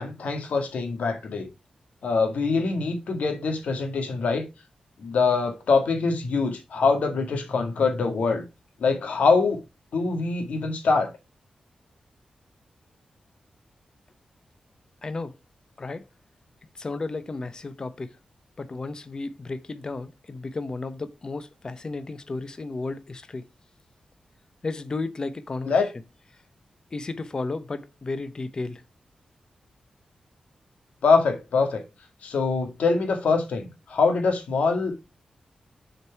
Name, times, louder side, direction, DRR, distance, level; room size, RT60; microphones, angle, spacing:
voice 1, 0.0-1.5 2.0-4.5 5.0-8.4 8.8-9.6 9.9-11.1 25.7-25.9 31.0-31.8 32.2-35.0, left 4 dB, 80° left, 1.8 m, -24 dB
voice 2, 15.0-15.4 15.8-16.0 16.8-18.2 18.6-23.4 24.6-25.8 26.9-28.8, left 3 dB, 35° left, 0.7 m, -33 dB
6.6 x 4.6 x 4.5 m
wide cardioid pair, 125°, 2 cm